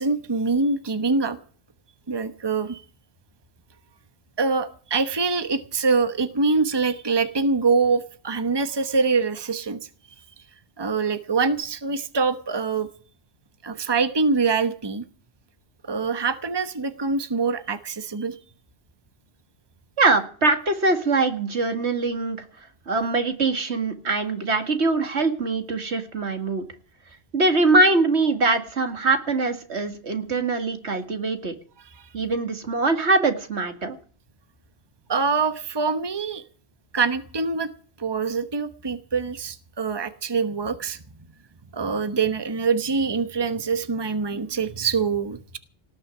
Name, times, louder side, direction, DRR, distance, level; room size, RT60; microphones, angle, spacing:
voice 1, 0.0-1.4 2.1-2.8 4.4-9.8 10.8-12.9 13.6-15.0 15.8-18.4 35.1-36.4 36.9-37.7 38.0-41.0 41.7-45.6, right 4 dB, 25° right, 11 dB, 1.1 m, -24 dB
voice 2, 20.0-22.4 22.9-26.7 27.3-31.5 32.1-34.0, right 3 dB, 85° right, 8 dB, 2.3 m, -22 dB
18.5 x 6.6 x 9.8 m, 0.43 s
omnidirectional pair, 1.1 m